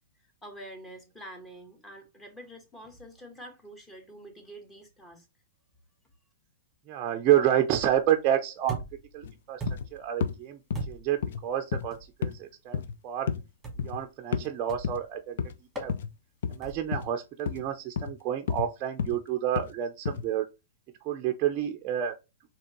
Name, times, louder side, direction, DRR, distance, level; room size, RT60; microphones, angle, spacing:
voice 1, 0.4-5.3, right 1 dB, 15° left, 1.4 m, -46 dB
voice 2, 6.9-8.8 9.1-9.6 9.9-10.6 10.9-13.3 13.8-15.4 15.8-15.9 16.5-20.5 21.0-22.1, right 11 dB, 35° right, 0.5 m, -29 dB
sound 1, 7.7-8.1 8.7-9.1 9.6-10.0 10.7-11.2 11.9-12.1 13.6-14.0 14.7-15.0 15.8-16.0 16.6-17.0, right 4 dB, 10° right, 1.4 m, -38 dB
sound 2, 9.2-9.3 9.7-9.9 10.2-10.4 10.7-10.9 11.2-11.4 11.7-11.9 12.2-12.4 12.7-12.9 13.3-13.4 13.8-14.0 14.3-14.5 14.8-15.0 15.4-15.5 15.9-16.1 16.4-16.6 16.9-17.1 17.5-17.7 18.0-18.1 18.5-18.7 19.0-19.2 19.6-19.7 20.1-20.2, left 7 dB, 70° left, 0.4 m, -31 dB
4.2 x 2.9 x 3.0 m
hypercardioid pair, 130°, 0 cm